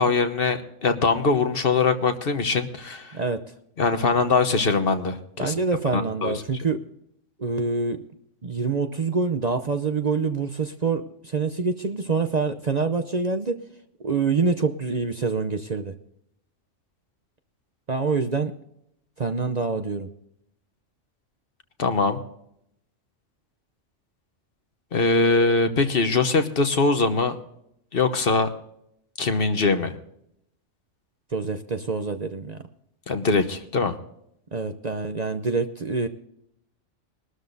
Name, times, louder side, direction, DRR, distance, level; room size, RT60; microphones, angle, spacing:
voice 1, 0.0-3.1 3.8-5.5 5.9-6.3 21.8-22.2 24.9-27.3 27.9-28.5 29.2-29.9 33.1-33.9, left 4 dB, 50° left, 8 dB, 1.2 m, -22 dB
voice 2, 3.1-3.4 5.4-6.8 7.4-8.0 8.4-13.6 14.0-15.9 17.9-18.5 19.2-20.1 31.3-32.6 34.5-36.1, right 4 dB, 40° right, 8 dB, 0.7 m, -26 dB
22.0 x 13.0 x 2.7 m, 0.75 s
omnidirectional pair, 1.3 m